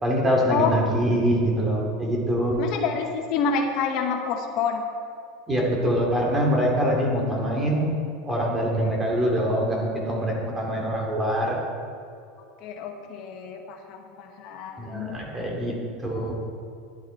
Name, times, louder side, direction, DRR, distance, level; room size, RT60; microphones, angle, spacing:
voice 1, 0.0-2.5 5.5-7.9 8.3-11.6 14.8-16.3, equal, 15° right, -1 dB, 2.5 m, -24 dB
voice 2, 2.5-4.8 12.6-15.2 16.1-16.3, left 6 dB, 55° left, 3 dB, 1.1 m, -28 dB
11.0 x 9.6 x 4.4 m, 2.4 s
supercardioid pair, 135°, 0 cm